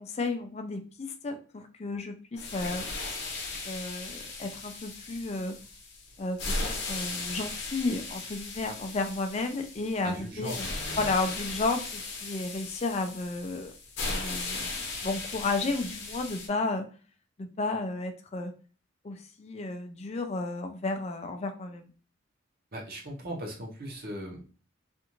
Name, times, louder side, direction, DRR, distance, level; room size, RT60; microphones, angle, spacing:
voice 1, 0.0-2.9 3.6-5.6 6.2-13.7 14.0-16.9 17.4-18.5 19.0-21.9, left 3 dB, 30° left, 7 dB, 0.4 m, -33 dB
sound 1, 2.4-16.5, left 3 dB, 55° left, 0.7 m, -37 dB
voice 2, 10.0-11.1 22.7-24.5, right 1 dB, 50° right, -1 dB, 0.8 m, -39 dB
2.5 x 2.4 x 2.9 m, 0.38 s
head